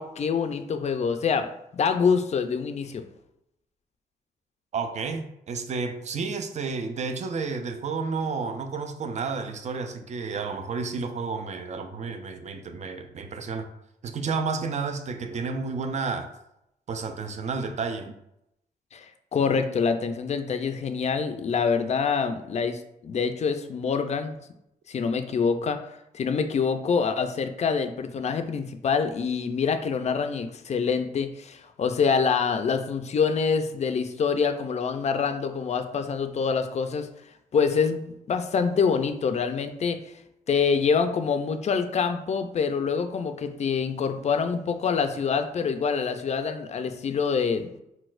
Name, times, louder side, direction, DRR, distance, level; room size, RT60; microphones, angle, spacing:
voice 1, 0.0-1.5 1.7-3.0 18.9-19.1 19.3-24.4 24.9-37.1 37.5-40.0 40.5-47.8, left 5 dB, 45° left, 8 dB, 0.4 m, -26 dB
voice 2, 4.7-13.7 14.0-16.3 16.9-18.1, right 4 dB, 50° right, 7 dB, 0.4 m, -31 dB
4.0 x 2.2 x 2.4 m, 0.82 s
cardioid pair, 70°, 15 cm